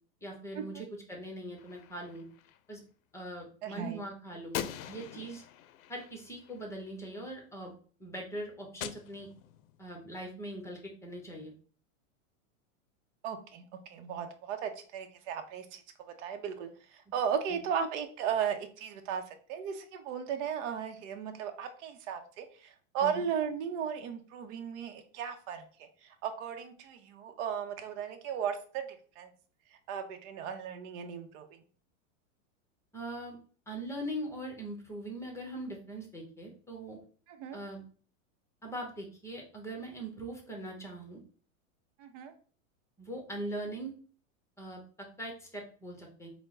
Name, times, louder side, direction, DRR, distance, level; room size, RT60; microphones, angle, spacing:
voice 1, 0.2-2.2 2.7-2.8 3.1-5.4 5.9-7.7 8.0-9.3 9.8-11.5 17.5-17.6 23.0-23.2 32.9-33.4 33.7-37.0 37.5-37.8 38.6-41.2 43.0-43.9 44.6-44.8 45.2-46.3, right 1 dB, 5° left, 1 dB, 0.9 m, -41 dB
Gunshot gunfire, 1.6-2.6 4.5-6.9 8.8-9.8, left 11 dB, 80° left, 0.5 m, -43 dB
voice 2, 3.6-4.0 13.2-13.6 13.9-28.8 29.2-29.3 29.9-31.6 37.3-37.6 42.0-42.3, right 7 dB, 60° right, 6 dB, 0.8 m, -36 dB
4.4 x 2.2 x 3.8 m, 0.42 s
supercardioid pair, 130°, 41 cm